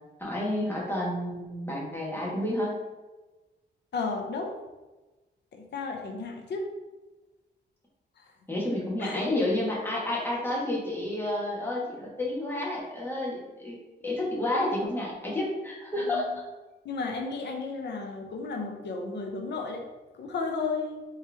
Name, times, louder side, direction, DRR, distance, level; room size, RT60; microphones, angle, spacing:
voice 1, 0.2-2.7 8.5-13.8 14.0-16.3, left 1 dB, 10° left, -4 dB, 1.4 m, -30 dB
voice 2, 3.9-4.5 5.5-6.7 8.2-8.3 9.0-9.3 16.0-16.4 16.8-19.8 20.1-21.0, left 4 dB, 70° left, 3 dB, 0.8 m, -33 dB
4.4 x 3.2 x 3.4 m, 1.1 s
wide cardioid pair, 120°, 19 cm